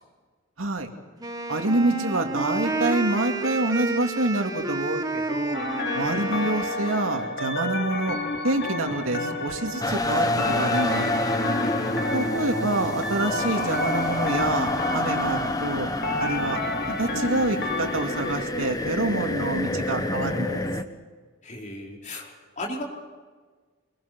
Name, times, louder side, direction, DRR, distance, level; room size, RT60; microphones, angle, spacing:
voice 1, 0.6-0.9 1.5-5.7 5.9-8.2 8.4-11.1 12.1-15.9 16.2-16.6 16.9-20.6, right 2 dB, 85° right, 4 dB, 2.5 m, -27 dB
Wind instrument woodwind instrument, 1.2-7.4, right 2 dB, 20° right, 1.6 m, -30 dB
sound 1, 5.5-18.5, left 2 dB, 55° left, 2.3 m, -31 dB
sound 2, 9.8-20.8, left 1 dB, 20° left, 1.3 m, -28 dB
voice 2, 11.6-12.4 16.4-16.6 21.4-22.8, left 1 dB, 40° left, -1 dB, 4.9 m, -37 dB
25.0 x 22.0 x 6.1 m, 1.4 s
head